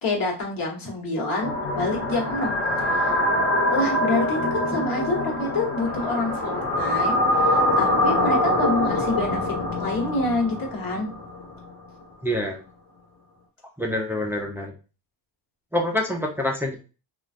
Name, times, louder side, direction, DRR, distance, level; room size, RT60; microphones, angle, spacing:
voice 1, 0.0-2.5 2.8-3.2 3.7-11.1, left 2 dB, 45° left, -1 dB, 1.3 m, -27 dB
sound 1, 1.4-11.5, left 1 dB, 30° left, 1.1 m, -24 dB
voice 2, 12.2-12.6 13.8-14.7 15.7-16.8, left 1 dB, 5° right, 1 dB, 0.3 m, -26 dB
3.1 x 2.4 x 2.5 m, 0.33 s
cardioid pair, 125°, 46 cm